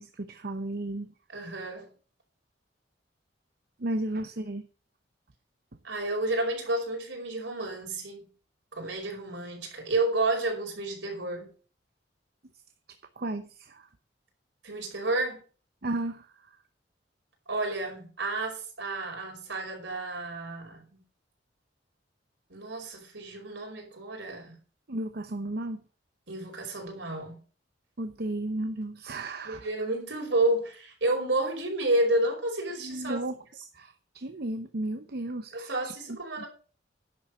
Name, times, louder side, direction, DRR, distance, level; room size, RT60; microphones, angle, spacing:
voice 1, 0.0-1.1 3.8-4.7 13.2-13.9 15.8-16.6 24.9-25.8 28.0-29.7 32.8-33.4 33.7-35.9 36.4-36.5, right 1 dB, 60° right, 0.9 m, -34 dB
voice 2, 1.3-1.9 5.8-8.3 8.7-11.5 14.6-15.4 17.5-21.0 22.5-24.6 26.3-27.4 29.4-33.3 35.5-36.5, right 2 dB, 75° right, 5.1 m, -30 dB
11.0 x 7.4 x 6.2 m
head